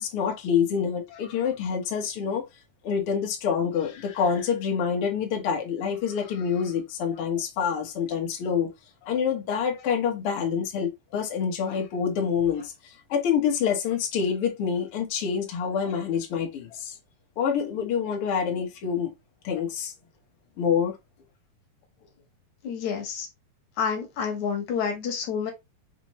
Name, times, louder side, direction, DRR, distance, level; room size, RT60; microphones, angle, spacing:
voice 1, 0.0-2.4 2.8-8.7 9.1-16.9 17.4-19.1 19.4-19.9 20.6-21.0, left 7 dB, 85° left, 1.2 m, -27 dB
voice 2, 22.6-23.3 23.8-25.5, left 6 dB, 65° left, 1.9 m, -29 dB
5.9 x 2.8 x 3.1 m
omnidirectional pair, 4.4 m